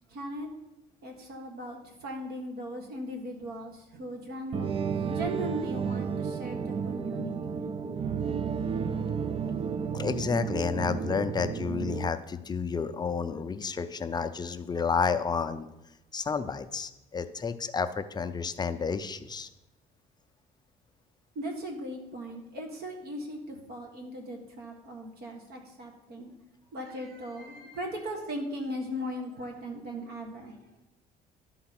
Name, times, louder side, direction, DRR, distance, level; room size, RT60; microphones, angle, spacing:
voice 1, 0.1-0.5 1.0-4.7 5.1-7.7 21.4-26.3 26.7-30.7, equal, 70° right, 2 dB, 1.7 m, -38 dB
sound 1, 4.5-12.1, right 6 dB, 35° right, 0.4 m, -32 dB
voice 2, 9.9-15.6 16.1-19.5, left 5 dB, 25° left, 10 dB, 0.5 m, -31 dB
11.5 x 3.9 x 5.9 m, 0.96 s
cardioid pair, 110°, 17 cm